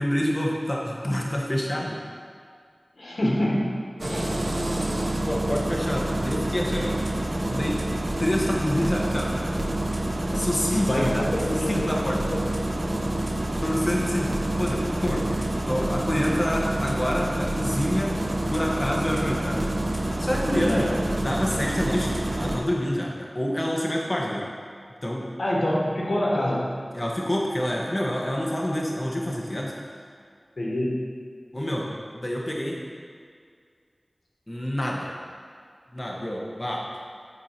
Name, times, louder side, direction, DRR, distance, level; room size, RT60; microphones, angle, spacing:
voice 1, 0.0-2.0 5.2-7.0 7.3-7.8 8.2-9.3 10.3-11.2 11.5-12.2 13.6-14.3 14.6-15.2 15.7-18.2 18.5-19.6 20.2-24.5 25.0-25.3 26.9-29.7 31.5-32.8 34.5-35.1 35.9-36.9, equal, 35° left, -2 dB, 1.2 m, -27 dB
voice 2, 3.0-3.6 4.0-4.3 10.8-11.9 12.2-12.4 20.7-20.9 25.4-26.6 30.6-31.0, left 1 dB, 85° left, -4 dB, 1.5 m, -25 dB
Engine starting, 4.0-22.6, right 1 dB, 50° right, 0.8 m, -27 dB
8.2 x 4.6 x 5.8 m, 2.1 s
wide cardioid pair, 45°, 0 cm